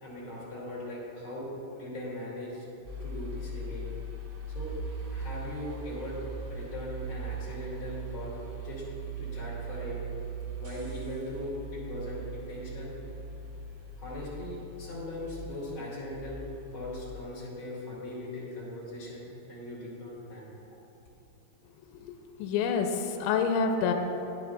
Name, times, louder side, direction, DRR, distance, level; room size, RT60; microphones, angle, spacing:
voice 1, 0.0-1.5 1.7-2.7 3.0-3.9 4.5-4.7 5.1-6.2 6.5-8.8 9.2-10.0 10.6-12.9 14.0-16.4 16.7-20.5, left 1 dB, 35° left, -7 dB, 2.4 m, -39 dB
sound 1, 2.9-17.2, right 3 dB, 85° right, 3.9 m, -40 dB
voice 2, 21.9-23.9, left 5 dB, 85° left, 4 dB, 3.0 m, -28 dB
21.0 x 7.9 x 2.4 m, 2.9 s
omnidirectional pair, 5.5 m